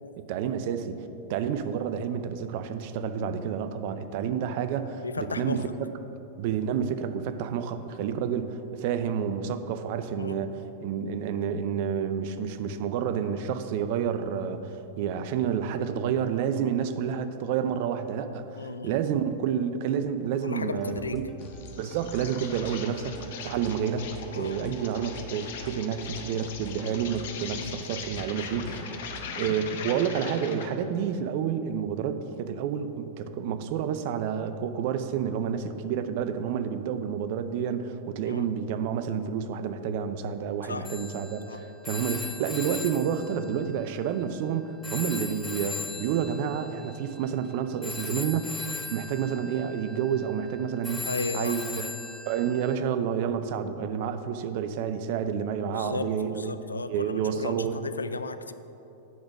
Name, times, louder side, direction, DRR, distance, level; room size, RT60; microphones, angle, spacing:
voice 1, 0.2-5.9 6.4-21.3 21.8-23.2 23.4-28.9 29.4-51.9 52.3-56.5 56.9-57.8, right 8 dB, 55° right, 10 dB, 0.5 m, -29 dB
voice 2, 5.0-5.6 10.2-10.4 18.5-19.0 20.4-21.2 24.3-24.7 27.5-27.8 38.3-38.5 40.7-40.9 41.5-41.6 51.1-51.6 55.7-58.5, left 3 dB, 90° left, 12 dB, 0.3 m, -35 dB
sound 1, 20.8-29.5, right 3 dB, 15° right, 0.9 m, -46 dB
Insect, 21.4-30.8, left 6 dB, 65° left, 0.8 m, -40 dB
Telephone, 40.8-44.5 44.8-52.8, left 4 dB, 15° left, 0.4 m, -39 dB
9.3 x 4.0 x 6.3 m, 2.9 s
hypercardioid pair, 100°, 0 cm